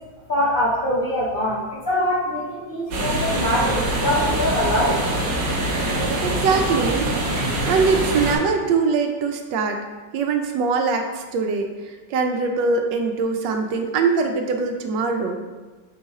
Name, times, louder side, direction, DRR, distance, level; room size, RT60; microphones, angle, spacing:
voice 1, 0.3-5.0, left 1 dB, 65° left, -7 dB, 0.5 m, -23 dB
sound 1, 2.9-8.4, right 1 dB, 60° right, 1.1 m, -24 dB
voice 2, 6.2-7.1 7.6-9.8 10.1-11.7 12.1-15.4, right 4 dB, 85° right, 5 dB, 1.3 m, -22 dB
5.4 x 2.5 x 4.0 m, 1.3 s
omnidirectional pair, 1.9 m